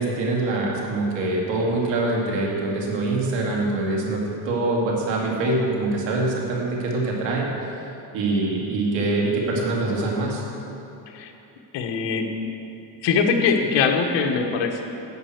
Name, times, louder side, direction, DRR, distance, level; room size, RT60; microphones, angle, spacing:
voice 1, 0.0-7.5 8.1-10.4, right 2 dB, 90° right, -2 dB, 2.4 m, -24 dB
voice 2, 11.7-12.3 13.0-14.8, left 5 dB, 80° left, 4 dB, 1.2 m, -22 dB
11.0 x 5.7 x 7.8 m, 3.0 s
cardioid pair, 125°, 44 cm